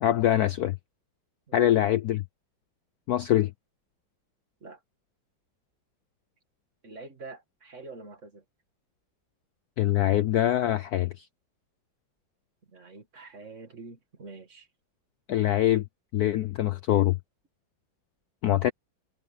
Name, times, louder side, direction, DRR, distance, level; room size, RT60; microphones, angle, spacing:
voice 1, 0.0-0.8 1.5-2.2 3.1-3.5 9.8-11.2 15.3-15.8 16.1-17.2 18.4-18.7, left 13 dB, 70° left, 0.9 m, -24 dB
voice 2, 6.8-8.4 12.7-14.7, right 3 dB, 40° right, 2.2 m, -45 dB
omnidirectional pair, 2.1 m